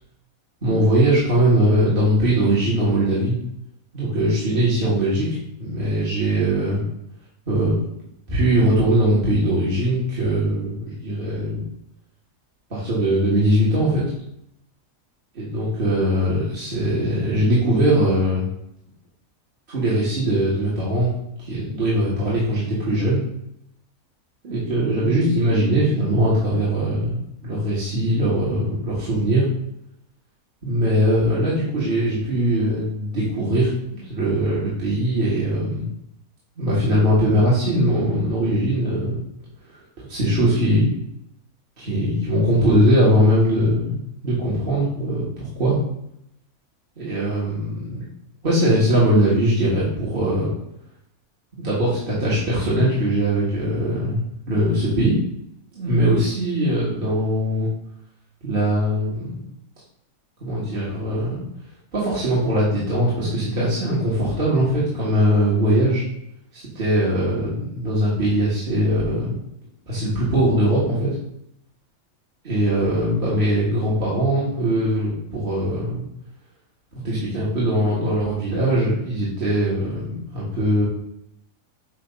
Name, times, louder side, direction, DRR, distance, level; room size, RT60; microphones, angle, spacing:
voice 1, 0.6-3.4 3.9-6.9 7.5-7.8 8.3-11.6 12.7-14.0 15.3-18.5 19.7-21.1 21.4-23.2 24.4-29.4 30.6-33.7 34.0-35.9 36.6-39.2 39.6-40.9 41.8-45.8 47.0-48.0 48.4-50.5 51.6-54.2 54.5-55.2 55.7-57.7 58.4-59.4 60.4-61.4 61.9-66.0 66.5-69.3 69.9-71.1 72.4-76.1 76.9-80.8, right 1 dB, 40° right, -8 dB, 1.9 m, -21 dB
8.6 x 2.9 x 5.4 m, 0.77 s
omnidirectional pair, 1.5 m